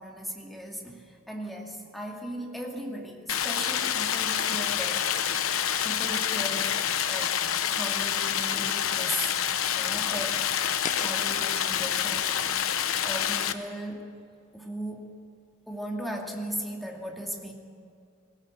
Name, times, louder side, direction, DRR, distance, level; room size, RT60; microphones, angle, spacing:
voice 1, 0.0-5.1 5.8-6.8 7.1-9.3 9.7-10.5 11.0-14.1 14.5-15.1 15.7-17.5, equal, ahead, 0 dB, 2.3 m, -37 dB
Stream, 3.3-13.5, left 9 dB, 85° left, 0.9 m, -27 dB
sound 1, 10.8-13.9, left 6 dB, 35° left, 0.7 m, -41 dB
18.5 x 17.5 x 8.1 m, 2.4 s
head